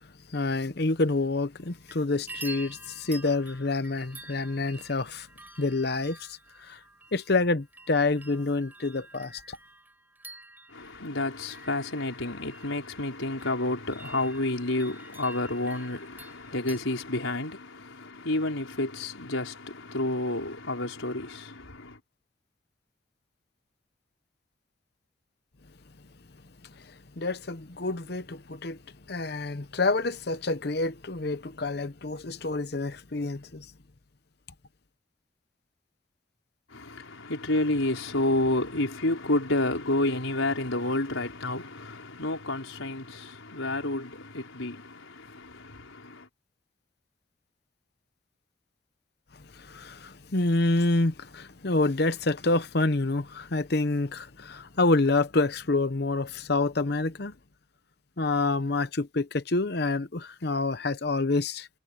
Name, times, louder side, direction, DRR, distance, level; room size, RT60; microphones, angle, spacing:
voice 1, 0.3-5.3 5.6-6.8 7.1-9.6 26.6-28.8 29.1-33.7 49.5-57.3 58.2-61.7, left 2 dB, 55° left, 0.9 m, -27 dB
sound 1, 1.6-2.0 2.3-16.8, right 2 dB, 10° right, 6.6 m, -48 dB
voice 2, 10.7-22.0 36.7-46.3, left 2 dB, 90° left, 5.1 m, -30 dB
head